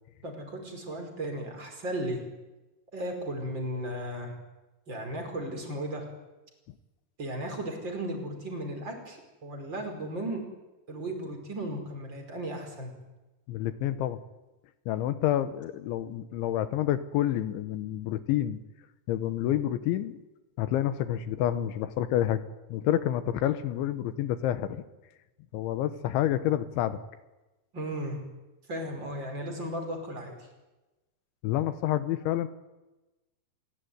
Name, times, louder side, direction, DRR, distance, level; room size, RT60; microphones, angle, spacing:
voice 1, 0.2-2.2 2.9-4.3 4.9-6.1 7.2-10.4 10.9-12.9 27.7-28.2 28.7-30.3, right 1 dB, 25° right, 3 dB, 5.4 m, -35 dB
voice 2, 13.5-14.2 14.9-18.6 19.1-20.2 20.6-22.4 22.7-24.8 25.5-27.0 31.4-32.5, left 12 dB, 85° left, 12 dB, 3.5 m, -28 dB
29.0 x 17.0 x 9.5 m, 1.1 s
omnidirectional pair, 5.3 m